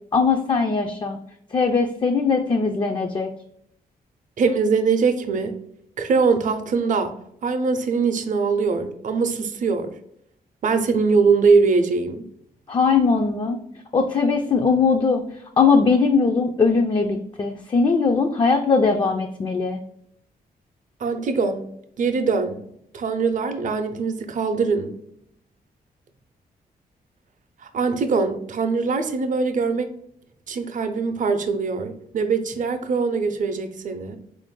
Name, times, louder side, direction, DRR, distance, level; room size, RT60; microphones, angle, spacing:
voice 1, 0.1-1.2 1.5-3.3 12.7-13.6 13.9-15.2 15.6-19.8, left 4 dB, 30° left, 3 dB, 0.4 m, -20 dB
voice 2, 4.4-5.5 6.0-7.1 7.4-9.9 10.6-12.2 21.0-21.6 22.0-22.6 22.9-24.9 27.6-29.9 30.5-34.2, right 4 dB, 55° right, 7 dB, 0.6 m, -22 dB
3.8 x 2.5 x 3.6 m, 0.72 s
cardioid pair, 100°, 16 cm